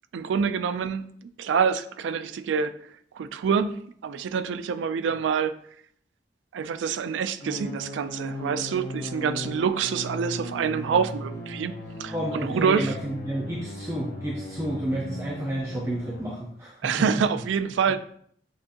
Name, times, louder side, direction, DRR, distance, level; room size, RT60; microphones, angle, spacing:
voice 1, 0.1-2.7 3.1-5.5 6.5-11.7 12.0-12.9 16.8-18.0, right 6 dB, 85° right, 0.3 m, -26 dB
sound 1, 7.4-16.2, left 1 dB, 55° left, 0.9 m, -37 dB
voice 2, 12.1-16.8, right 1 dB, 15° right, 0.5 m, -30 dB
6.6 x 2.9 x 2.5 m
head